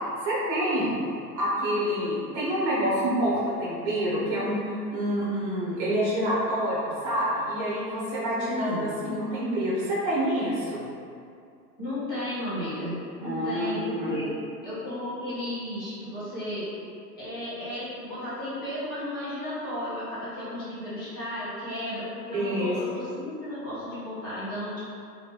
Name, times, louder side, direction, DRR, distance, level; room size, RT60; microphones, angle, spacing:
voice 1, 0.2-0.9 1.4-10.8 13.2-14.2 22.3-22.7, equal, 25° right, -7 dB, 0.8 m, -27 dB
voice 2, 8.4-8.9 11.8-14.3 14.6-16.7 17.2-24.8, left 1 dB, 15° left, -12 dB, 0.4 m, -34 dB
3.0 x 2.5 x 2.9 m, 2.5 s
figure-of-eight pair, 105°, 50 cm